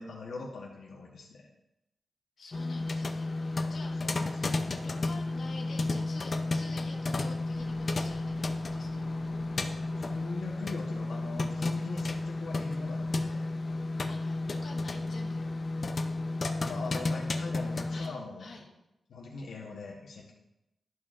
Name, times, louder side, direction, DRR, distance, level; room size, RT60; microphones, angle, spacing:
voice 1, 0.0-1.5 4.0-4.6 10.0-13.5 16.6-18.5 19.1-20.3, left 3 dB, 90° left, -2 dB, 1.1 m, -42 dB
voice 2, 2.4-4.2 4.8-9.1 14.1-15.5 17.9-18.7, left 3 dB, 60° left, -1 dB, 1.3 m, -48 dB
sound 1, 2.5-18.1, left 2 dB, 35° left, 0.5 m, -32 dB
sound 2, 7.5-10.7, right 1 dB, 30° right, 1.6 m, -51 dB
12.5 x 4.5 x 2.5 m, 0.89 s
wide cardioid pair, 165°, 0 cm